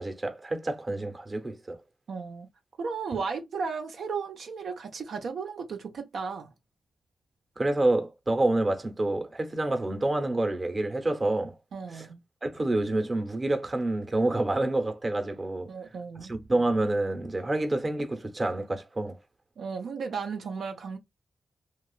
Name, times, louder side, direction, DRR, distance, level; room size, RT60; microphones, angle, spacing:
voice 1, 0.0-1.8 7.6-11.5 11.9-12.1 12.4-15.7 16.2-19.2, right 2 dB, 35° right, 0.8 m, -28 dB
voice 2, 2.1-2.5 2.8-6.5 11.7-12.2 15.7-16.3 19.6-21.0, right 5 dB, 80° right, 0.6 m, -35 dB
3.0 x 2.3 x 2.4 m
cardioid pair, 60°, 0 cm